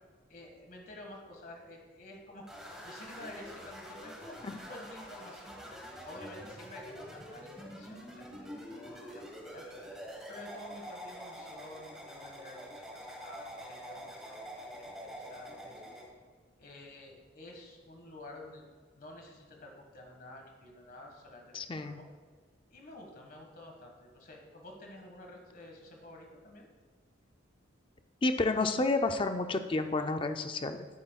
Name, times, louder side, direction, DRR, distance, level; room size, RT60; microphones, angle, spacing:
voice 1, 0.3-2.5 2.8-5.8 6.0-9.6 10.3-14.8 15.0-15.8 16.6-18.6 19.0-22.0 22.7-26.7, left 1 dB, 45° left, 1 dB, 1.6 m, -50 dB
sound 1, 2.5-16.1, equal, 5° right, 1.2 m, -46 dB
voice 2, 21.5-22.0 28.2-30.9, left 3 dB, 25° left, 8 dB, 0.4 m, -30 dB
11.0 x 8.6 x 2.3 m, 1.5 s
head